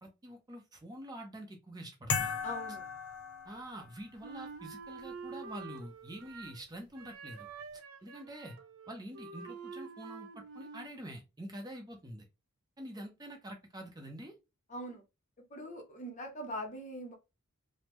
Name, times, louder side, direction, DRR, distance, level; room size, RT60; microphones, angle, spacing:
voice 1, 0.0-2.4 3.4-7.5 8.0-8.5 8.9-12.3 12.8-14.3, right 1 dB, 15° right, 0.6 m, -46 dB
sound 1, 2.1-4.0, left 6 dB, 70° left, 0.7 m, -36 dB
voice 2, 2.4-2.9 14.7-15.0 15.5-17.1, equal, 35° left, 0.7 m, -41 dB
Wind instrument woodwind instrument, 4.2-6.6 7.0-11.0, right 5 dB, 70° right, 0.5 m, -47 dB
3.5 x 2.0 x 3.0 m
head